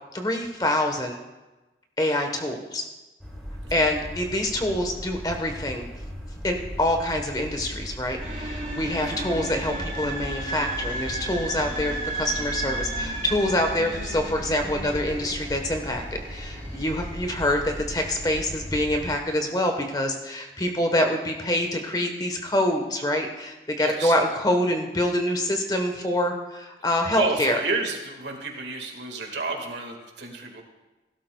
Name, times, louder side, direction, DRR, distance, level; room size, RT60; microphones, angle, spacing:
voice 1, 0.1-1.2 2.0-2.8 3.7-5.9 6.4-16.0 16.3-27.6, left 1 dB, 20° left, 4 dB, 1.1 m, -26 dB
sound 1, 3.2-19.2, equal, 5° left, 2.4 m, -38 dB
sound 2, 8.2-19.2, right 2 dB, 45° right, 3.6 m, -35 dB
voice 2, 23.8-24.2 27.1-30.6, right 3 dB, 85° right, 2 dB, 1.8 m, -31 dB
16.5 x 12.5 x 2.3 m, 1.1 s
head